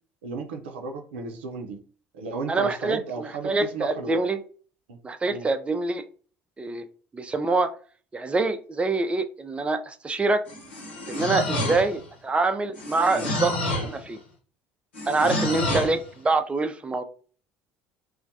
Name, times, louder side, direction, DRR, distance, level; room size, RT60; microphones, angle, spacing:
voice 1, 0.2-1.8 2.1-4.2 4.9-5.0 5.3-5.5 11.6-11.8 13.1-13.4 13.6-13.9 15.2-15.4, right 4 dB, 85° right, 4 dB, 0.4 m, -35 dB
voice 2, 2.5-4.4 5.0-6.0 6.6-6.9 7.1-7.7 8.1-10.4 11.1-14.2 15.1-17.0, right 3 dB, 20° right, 9 dB, 0.4 m, -25 dB
sound 1, 10.5-12.1 12.7-14.0 14.9-16.0, left 1 dB, 90° left, 0.9 m, -29 dB
2.2 x 2.1 x 2.7 m, 0.40 s
hypercardioid pair, 70°, 6 cm